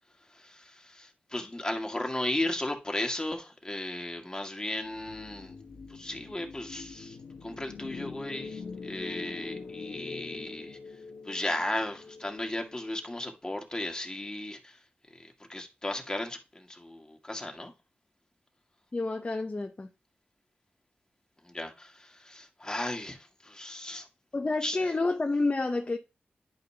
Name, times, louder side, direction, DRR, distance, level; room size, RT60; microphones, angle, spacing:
voice 1, 0.3-5.6 5.9-10.8 11.2-14.8 15.1-17.7 21.4-24.1 24.6-24.9, left 1 dB, 20° left, 1.9 m, -35 dB
sound 1, 4.8-13.2, left 4 dB, 80° left, 1.2 m, -44 dB
voice 2, 18.9-19.9 24.3-26.0, left 3 dB, 35° left, 0.7 m, -29 dB
10.5 x 5.3 x 2.8 m
cardioid pair, 60°, 4 cm